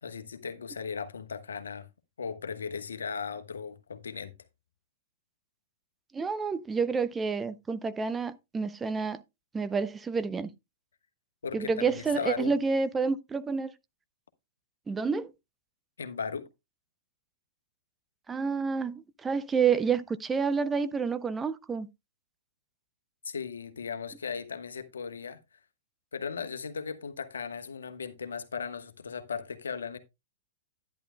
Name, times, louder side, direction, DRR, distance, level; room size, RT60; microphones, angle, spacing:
voice 1, 0.0-1.9 2.2-4.3 11.4-12.5 16.0-16.5 23.2-25.4 26.1-30.0, left 6 dB, 85° left, 1.2 m, -37 dB
voice 2, 6.1-9.2 9.5-10.5 11.5-13.7 14.9-15.3 18.3-21.9, right 5 dB, 15° right, 0.6 m, -29 dB
11.0 x 10.5 x 2.2 m
hypercardioid pair, 120°, 0 cm